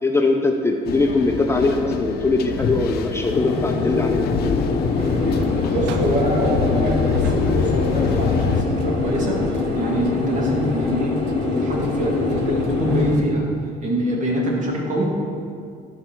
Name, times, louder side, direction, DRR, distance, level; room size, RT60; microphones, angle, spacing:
voice 1, 0.0-4.3, left 3 dB, 15° left, 3 dB, 0.6 m, -21 dB
sound 1, 0.9-8.6, left 5 dB, 65° left, 0.7 m, -25 dB
sound 2, 3.3-13.1, left 4 dB, 30° left, 1.0 m, -24 dB
sound 3, 5.0-13.2, right 6 dB, 90° right, 0.6 m, -35 dB
voice 2, 5.7-9.4 9.7-11.2 11.4-13.4 13.8-15.2, equal, 45° right, -2 dB, 2.2 m, -24 dB
12.0 x 5.5 x 4.5 m, 2.3 s
cardioid pair, 110°, 17 cm